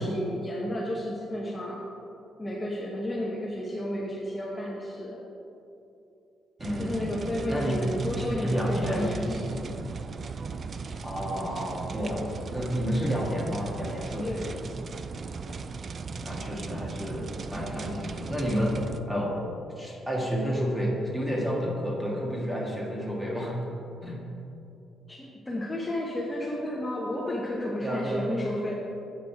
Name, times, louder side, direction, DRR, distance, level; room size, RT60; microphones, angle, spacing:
voice 1, 0.0-1.9 2.4-5.2 6.8-9.6 14.2-14.5 25.1-28.7, left 1 dB, 20° left, -3 dB, 0.9 m, -32 dB
voice 2, 6.6-7.1 7.5-7.7 8.3-9.7 11.0-14.4 16.2-18.8 19.1-19.4 19.8-23.6 24.0-24.3 27.8-28.3, equal, 10° right, -3 dB, 1.7 m, -30 dB
sound 1, 6.6-19.0, right 4 dB, 45° right, 0.3 m, -37 dB
7.9 x 5.0 x 4.6 m, 2.8 s
cardioid pair, 90°, 0 cm